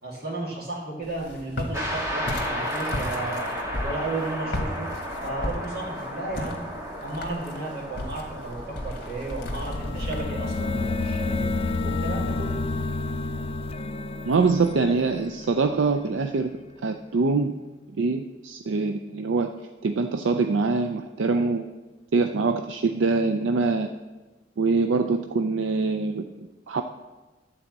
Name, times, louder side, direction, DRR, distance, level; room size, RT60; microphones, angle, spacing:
voice 1, 0.0-3.6 3.8-5.0 5.2-6.6 7.0-11.5 11.8-12.7, right 2 dB, 55° right, -3 dB, 2.3 m, -34 dB
Walk footsteps, 1.0-10.2, left 1 dB, 55° left, 1.5 m, -35 dB
sound 1, 1.7-14.3, equal, 15° right, 1.4 m, -35 dB
sound 2, 9.4-16.1, left 3 dB, 30° left, 0.3 m, -30 dB
voice 2, 14.2-16.5 16.8-17.5 18.0-19.5 19.8-21.7 22.1-23.9 24.6-26.2 26.7-26.8, right 4 dB, 80° right, 7 dB, 0.5 m, -24 dB
12.0 x 4.2 x 7.3 m, 1.2 s
head